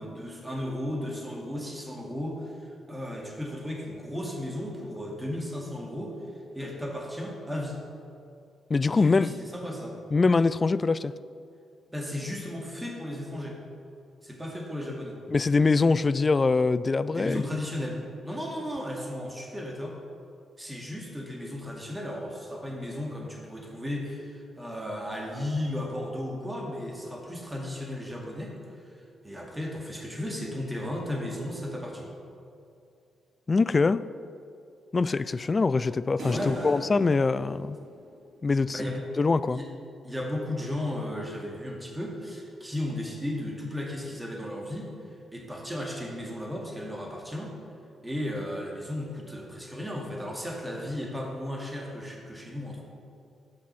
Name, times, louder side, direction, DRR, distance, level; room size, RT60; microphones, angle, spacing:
voice 1, 0.0-6.2 6.5-7.8 8.9-10.0 11.9-13.6 14.2-15.2 17.1-20.0 20.6-32.1 36.2-36.8 38.7-39.0 39.5-39.7 40.0-47.5 48.0-52.8, left 1 dB, 10° right, -1 dB, 2.3 m, -35 dB
voice 2, 8.7-9.3 10.1-11.1 15.3-17.4 33.5-34.0 34.9-37.8 38.4-39.6, left 4 dB, 35° left, 16 dB, 0.3 m, -23 dB
sound 1, 36.2-38.6, right 2 dB, 60° right, 2.1 m, -41 dB
9.8 x 6.0 x 5.7 m, 2.5 s
hypercardioid pair, 40°, 0 cm